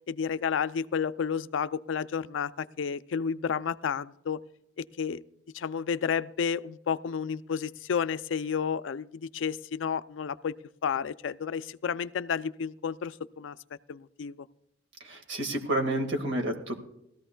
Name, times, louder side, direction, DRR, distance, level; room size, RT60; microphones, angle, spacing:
voice 1, 0.1-4.4 4.8-5.2 5.5-10.6 10.8-13.6 13.9-14.5, left 6 dB, 90° left, 15 dB, 0.4 m, -31 dB
voice 2, 15.0-16.8, right 1 dB, 75° right, 4 dB, 1.9 m, -30 dB
20.0 x 14.0 x 2.2 m, 0.82 s
head